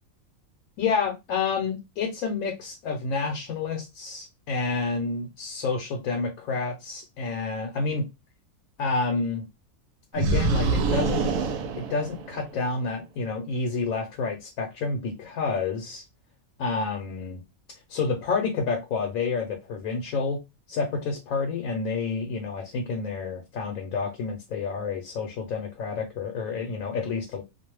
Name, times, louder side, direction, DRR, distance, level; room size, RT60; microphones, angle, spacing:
voice 1, 0.8-8.0 8.8-9.4 10.1-11.3 11.9-16.0 16.6-17.4 17.9-20.4 20.7-27.4, left 4 dB, 75° left, 1.0 m, -29 dB
sound 1, 10.2-12.6, right 4 dB, 75° right, 1.0 m, -26 dB
2.5 x 2.1 x 2.9 m
omnidirectional pair, 1.5 m